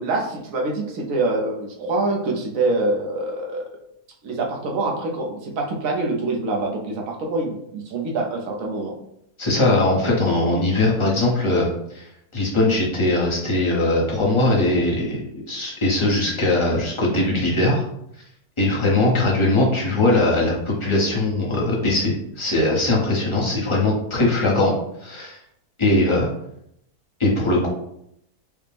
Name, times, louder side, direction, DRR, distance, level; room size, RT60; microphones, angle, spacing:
voice 1, 0.0-3.7 4.2-8.9, right 2 dB, 65° right, 0 dB, 1.0 m, -25 dB
voice 2, 9.4-12.1 12.3-17.9 18.6-24.7 25.0-25.4 25.8-26.3 27.2-27.7, left 2 dB, 25° left, -3 dB, 0.7 m, -20 dB
4.9 x 2.1 x 3.3 m, 0.76 s
omnidirectional pair, 1.6 m